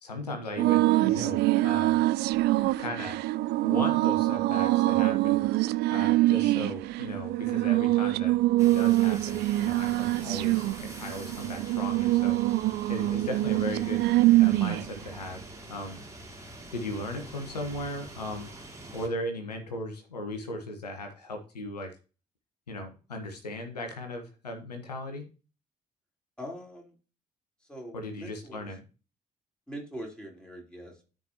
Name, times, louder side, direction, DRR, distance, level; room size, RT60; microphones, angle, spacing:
voice 1, 0.0-2.0 2.8-3.2 3.6-5.4 5.9-12.4 12.9-14.0 14.4-15.4 15.7-16.1 16.7-18.5 18.9-21.9 22.7-25.2 27.9-28.8, left 1 dB, 85° left, 5 dB, 1.3 m, -37 dB
sound 1, 0.6-15.0, right 18 dB, 60° right, 0.4 m, -24 dB
sound 2, 8.6-19.1, right 1 dB, 15° right, 2.6 m, -45 dB
voice 2, 13.2-13.5 26.4-26.9 27.7-28.6 29.7-31.1, equal, 5° left, -2 dB, 4.1 m, -42 dB
13.0 x 5.2 x 2.9 m, 0.34 s
figure-of-eight pair, 45°, 20 cm